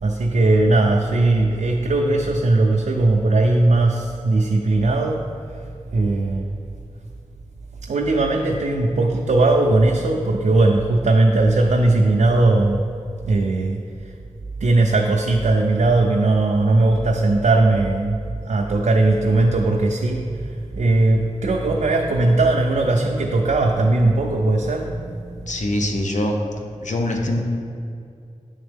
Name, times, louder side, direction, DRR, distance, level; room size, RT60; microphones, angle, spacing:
voice 1, 0.0-5.2 5.9-6.6 7.8-12.9 13.2-13.8 14.6-18.2 18.5-25.7, right 2 dB, 75° right, 1 dB, 0.4 m, -18 dB
voice 2, 25.5-26.4 26.8-27.4, left 1 dB, 75° left, 2 dB, 0.7 m, -23 dB
8.8 x 3.5 x 3.5 m, 2.4 s
wide cardioid pair, 65°, 13 cm